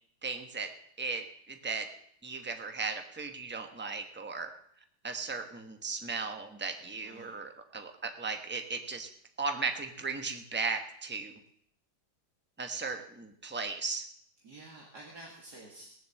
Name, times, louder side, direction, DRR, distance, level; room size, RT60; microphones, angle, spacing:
voice 1, 0.2-0.7 1.0-1.9 2.2-4.5 5.0-9.1 9.4-11.3 12.6-14.0, right 4 dB, 10° right, 5 dB, 0.9 m, -36 dB
voice 2, 6.8-7.3 12.8-12.9 14.4-15.9, right 2 dB, 60° right, -2 dB, 2.6 m, -50 dB
19.5 x 7.2 x 7.6 m, 0.69 s
omnidirectional pair, 2.0 m